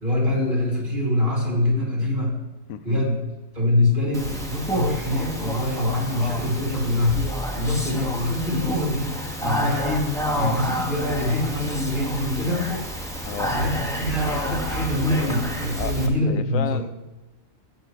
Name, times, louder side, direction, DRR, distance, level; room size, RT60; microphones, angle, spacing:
voice 1, 0.0-2.4 2.8-3.2 3.5-10.1 10.3-12.7 13.3-16.8, left 1 dB, 40° right, -4 dB, 3.4 m, -24 dB
voice 2, 2.7-3.1 13.3-13.5 15.8-15.9 16.3-16.9, left 9 dB, 85° left, 12 dB, 1.0 m, -31 dB
Speech, 4.1-16.1, equal, 5° left, 1.1 m, -29 dB
13.5 x 8.4 x 3.2 m, 1.1 s
omnidirectional pair, 1.4 m